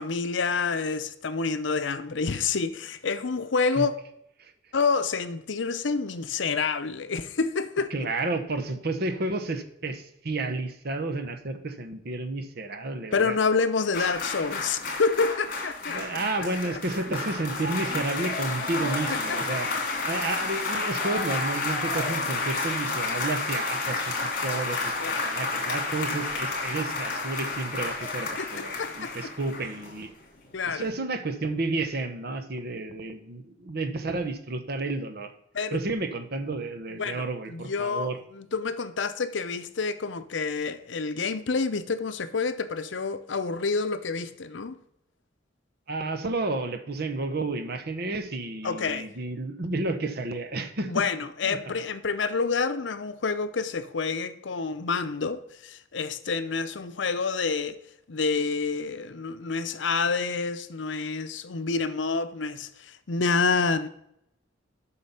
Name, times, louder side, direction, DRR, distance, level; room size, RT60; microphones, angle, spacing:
voice 1, 0.0-3.9 4.7-7.9 13.1-16.0 16.9-17.0 19.1-19.8 25.0-25.2 28.4-29.3 30.5-30.9 35.5-35.8 36.9-44.8 48.6-49.1 50.9-57.8 58.1-63.9, left 4 dB, 75° left, 0.7 m, -28 dB
voice 2, 7.9-13.4 14.0-14.1 15.9-19.7 20.0-30.1 30.7-35.3 35.7-38.2 45.9-51.0 51.4-51.7, right 2 dB, 55° right, 0.9 m, -31 dB
sound 1, 13.9-30.2 30.5-30.7, left 3 dB, 55° left, 2.5 m, -31 dB
7.9 x 5.8 x 5.5 m
head